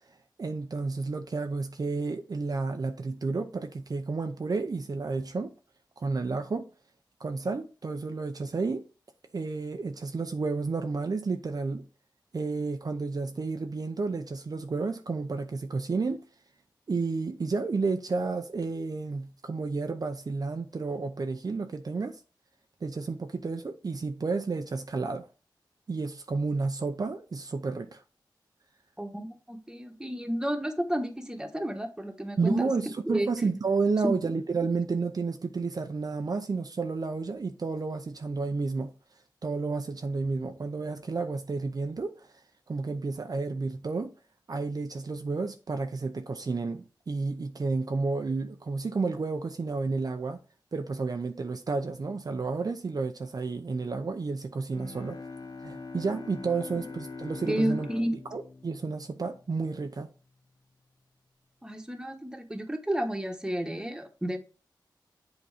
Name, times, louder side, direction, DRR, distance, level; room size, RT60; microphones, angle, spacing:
voice 1, 0.4-5.5 6.0-6.7 7.2-8.8 9.3-11.8 12.3-16.2 16.9-22.2 22.8-25.3 25.9-28.0 32.4-38.9 39.4-42.4 42.7-44.1 44.5-50.4 50.7-55.2 55.6-57.9 58.3-60.1, right 4 dB, 50° right, 0.6 m, -31 dB
voice 2, 29.0-32.6 33.1-33.3 34.0-34.1 57.5-58.1 61.6-64.4, equal, 10° right, 1.3 m, -31 dB
Bowed string instrument, 54.7-59.9, left 4 dB, 55° left, 1.1 m, -43 dB
7.8 x 4.1 x 4.9 m
wide cardioid pair, 75°, 8 cm